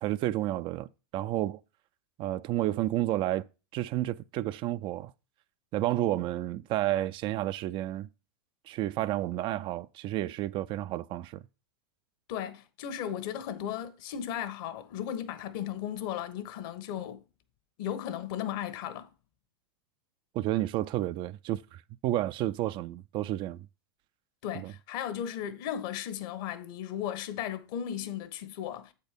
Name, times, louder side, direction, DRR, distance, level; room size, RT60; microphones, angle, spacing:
voice 1, 0.0-1.6 2.2-3.5 3.7-5.1 5.7-8.1 8.7-11.4 20.3-23.7 24.5-24.7, right 14 dB, 40° right, 0.4 m, -31 dB
voice 2, 12.3-17.2 17.8-19.1 24.4-28.9, left 10 dB, 60° left, 1.1 m, -36 dB
7.8 x 4.4 x 5.2 m
hypercardioid pair, 105°, 13 cm